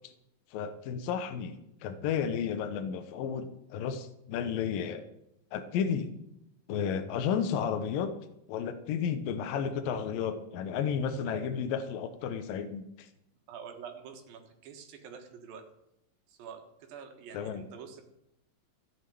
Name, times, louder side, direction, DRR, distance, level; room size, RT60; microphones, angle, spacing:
voice 1, 0.5-1.6 1.8-5.0 5.5-6.1 6.7-8.1 8.5-13.1 17.3-17.6, left 7 dB, 80° left, 8 dB, 2.7 m, -32 dB
voice 2, 11.2-11.6 13.5-15.6 16.3-18.0, right 7 dB, 80° right, 5 dB, 3.2 m, -47 dB
14.0 x 8.1 x 9.2 m, 0.83 s
omnidirectional pair, 4.1 m